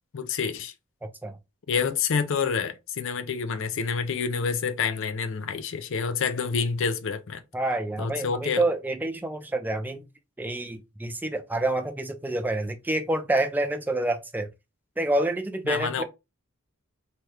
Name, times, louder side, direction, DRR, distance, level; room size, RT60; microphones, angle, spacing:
voice 1, 0.1-0.7 1.7-7.4 8.0-8.7 15.7-16.0, left 6 dB, 60° left, 0.4 m, -28 dB
voice 2, 1.0-1.4 7.5-10.1 10.4-14.5 15.0-16.0, right 1 dB, 10° right, 0.3 m, -28 dB
2.8 x 2.3 x 3.1 m
head